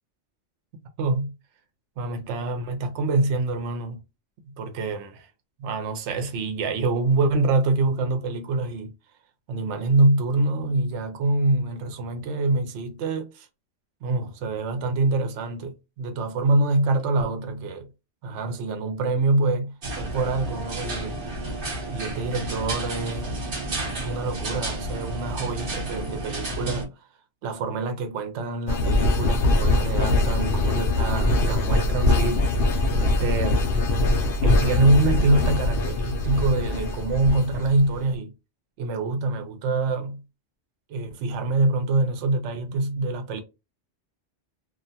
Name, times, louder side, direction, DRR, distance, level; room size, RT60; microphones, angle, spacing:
voice 1, 1.0-1.3 2.0-4.0 4.5-5.3 5.6-8.9 9.5-13.5 14.0-17.9 18.2-21.2 21.9-23.4 24.0-26.9 27.4-32.7 33.0-33.7 34.4-38.3 38.8-40.2 40.9-43.4, right 2 dB, 75° right, 0.9 m, -25 dB
sound 1, 19.8-26.8, right 1 dB, 50° right, 1.1 m, -31 dB
sound 2, 28.7-38.0, left 2 dB, 60° left, 0.7 m, -22 dB
2.4 x 2.2 x 2.7 m
omnidirectional pair, 1.2 m